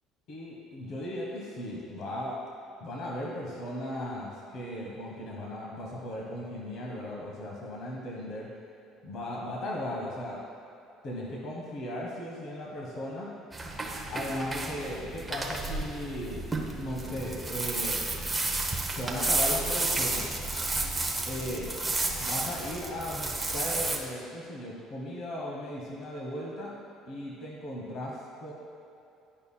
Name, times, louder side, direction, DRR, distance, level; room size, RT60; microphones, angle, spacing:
voice 1, 0.3-2.4 2.8-8.5 9.0-10.4 11.0-13.3 14.1-16.4 16.7-18.2 18.9-20.3 21.2-21.7 22.2-26.7 27.1-28.5, left 1 dB, 60° left, -3 dB, 1.2 m, -37 dB
sound 1, 13.5-24.0, right 2 dB, 15° right, 0.7 m, -32 dB
10.5 x 5.5 x 2.2 m, 2.7 s
cardioid pair, 110°, 0 cm